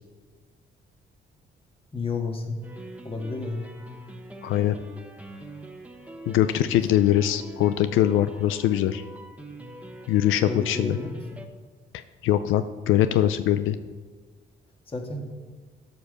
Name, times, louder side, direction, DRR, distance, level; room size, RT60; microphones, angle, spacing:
voice 1, 1.9-2.6 3.0-3.7 10.4-11.4 14.9-15.3, left 3 dB, 25° left, 2 dB, 2.0 m, -31 dB
sound 1, 2.6-11.5, right 1 dB, 5° right, 1.2 m, -43 dB
voice 2, 4.4-4.8 6.3-9.0 10.1-11.0 12.2-13.8, left 12 dB, 85° left, 11 dB, 0.5 m, -22 dB
13.0 x 5.3 x 6.4 m, 1.5 s
cardioid pair, 90°, 20 cm